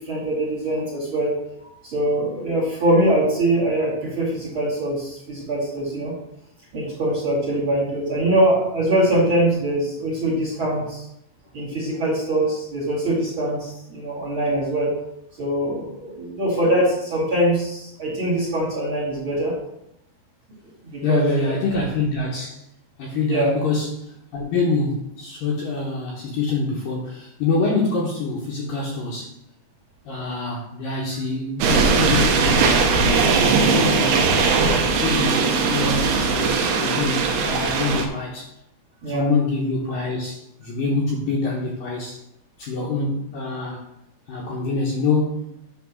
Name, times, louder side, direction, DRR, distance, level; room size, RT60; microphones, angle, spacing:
voice 1, 0.0-1.3 1.6-6.2 6.7-11.0 11.5-14.9 15.4-19.5 20.8-21.5 23.3-23.5 39.0-39.2, right 1 dB, 35° right, -5 dB, 2.4 m, -23 dB
voice 2, 21.0-22.6 23.0-29.3 30.1-34.3 34.8-38.5 39.1-42.2 42.6-43.9 44.3-45.5, left 3 dB, 70° left, -2 dB, 2.3 m, -25 dB
sound 1, 31.6-38.1, right 4 dB, 70° right, 2.6 m, -19 dB
9.3 x 4.1 x 6.2 m, 0.80 s
omnidirectional pair, 5.1 m